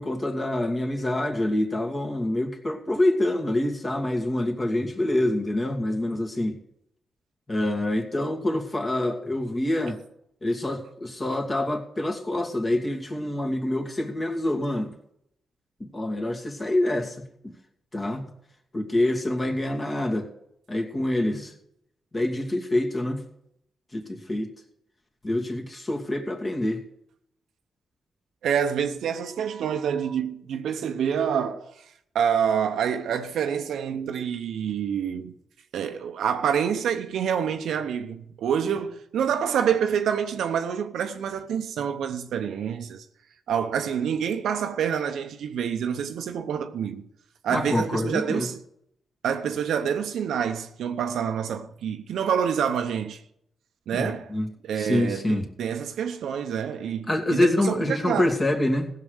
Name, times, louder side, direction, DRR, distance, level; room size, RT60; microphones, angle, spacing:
voice 1, 0.0-6.5 7.5-10.0 10.4-14.9 15.8-17.2 17.9-18.3 18.7-20.3 20.7-21.5 22.1-23.2 23.9-24.5 25.2-26.8 47.5-48.5 53.9-54.5 54.8-55.4 57.1-58.9, left 1 dB, 30° left, 2.5 m, -26 dB
voice 2, 28.4-31.7 32.1-35.3 35.7-43.0 43.5-47.1 47.4-48.6 49.2-53.2 53.9-54.3 54.6-58.3, right 8 dB, 80° right, 0.8 m, -27 dB
16.0 x 6.7 x 6.4 m
supercardioid pair, 60°, 0 cm